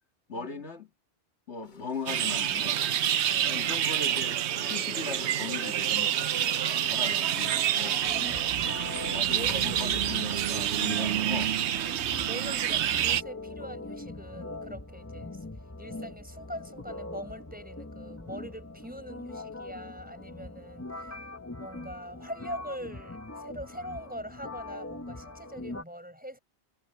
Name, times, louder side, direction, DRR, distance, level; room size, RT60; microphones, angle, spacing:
voice 1, 0.3-0.9 1.5-2.8 3.1-6.6 6.8-8.1 9.1-11.5, left 5 dB, 90° left, 2.3 m, -39 dB
sound 1, 1.6-11.0, left 4 dB, 45° left, 1.2 m, -49 dB
sound 2, 2.1-13.2, right 10 dB, 85° right, 1.0 m, -28 dB
voice 2, 3.3-3.8 7.1-7.4 9.3-10.0 11.2-11.3 12.2-15.4 15.8-21.2 21.6-26.4, equal, 10° right, 4.7 m, -43 dB
sound 3, 8.0-25.8, left 2 dB, 15° left, 1.0 m, -42 dB
omnidirectional pair, 1.1 m